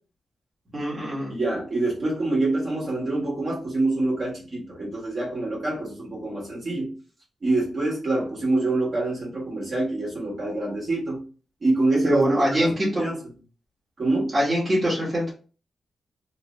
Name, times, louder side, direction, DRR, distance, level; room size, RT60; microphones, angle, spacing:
voice 1, 0.7-1.4 12.0-13.1 14.3-15.3, equal, 20° right, -7 dB, 1.3 m, -23 dB
voice 2, 1.3-6.9 7.4-11.2 11.6-13.2 14.0-14.3, right 2 dB, 35° right, -6 dB, 1.4 m, -26 dB
3.2 x 2.8 x 3.0 m, 0.38 s
wide cardioid pair, 180°, 0 cm